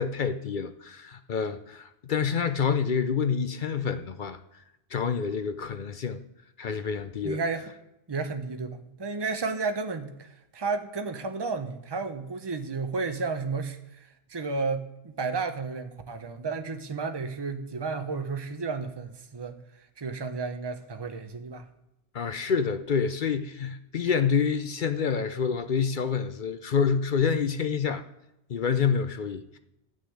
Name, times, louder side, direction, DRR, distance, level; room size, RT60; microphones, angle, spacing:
voice 1, 0.0-4.4 4.9-6.2 6.6-7.4 22.1-28.0 28.5-29.6, left 6 dB, 55° left, 10 dB, 0.7 m, -27 dB
voice 2, 7.2-7.7 8.1-21.7, right 4 dB, 25° right, 7 dB, 0.8 m, -32 dB
11.5 x 6.4 x 8.6 m, 0.88 s
omnidirectional pair, 1.1 m